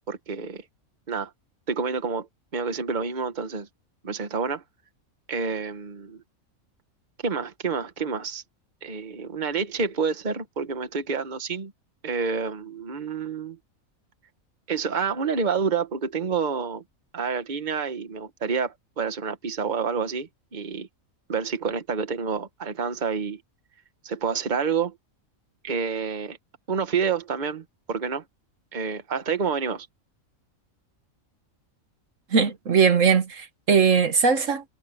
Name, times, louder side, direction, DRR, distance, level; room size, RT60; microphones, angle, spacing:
voice 1, 0.1-0.6 1.1-1.3 1.7-2.3 2.5-3.7 4.0-4.6 5.3-6.2 7.2-8.4 8.8-11.7 12.0-13.6 14.7-16.8 17.1-20.9 21.3-23.4 24.0-24.9 25.6-26.4 26.7-28.2 28.7-29.9, right 5 dB, 35° right, 1.4 m, -28 dB
voice 2, 32.3-34.6, right 6 dB, 65° right, 1.6 m, -20 dB
omnidirectional pair, 1.4 m